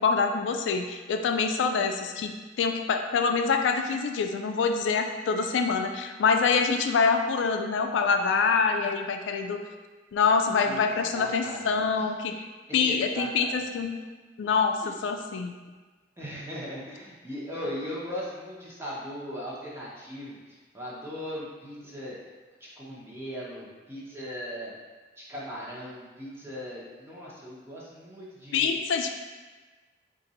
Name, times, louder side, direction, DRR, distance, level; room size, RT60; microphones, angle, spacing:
voice 1, 0.0-2.3 2.6-9.6 10.1-12.4 12.7-14.0 14.4-15.5 28.5-29.1, left 5 dB, 90° left, 5 dB, 0.3 m, -25 dB
voice 2, 10.6-12.1 12.7-13.6 16.2-22.2 22.6-24.8 25.2-28.8, equal, 15° right, -7 dB, 0.9 m, -38 dB
3.9 x 2.5 x 4.1 m, 1.3 s
head